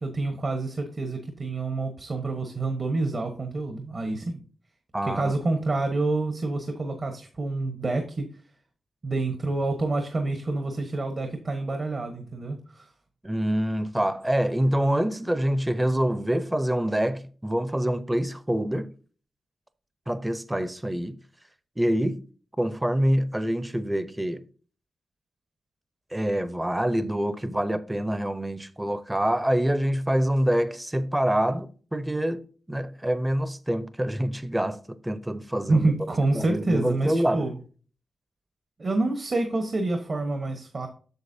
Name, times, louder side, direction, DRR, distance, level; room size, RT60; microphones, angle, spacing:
voice 1, 0.0-4.4 5.0-8.3 9.0-12.9 35.7-37.6 38.8-40.9, right 2 dB, 50° right, 1.2 m, -27 dB
voice 2, 4.9-5.3 13.2-18.9 20.1-21.2 21.8-22.2 22.6-24.4 26.1-32.4 32.7-35.9 36.3-37.4, right 1 dB, 10° right, 0.7 m, -26 dB
8.1 x 6.5 x 2.7 m
cardioid pair, 65°, 0 cm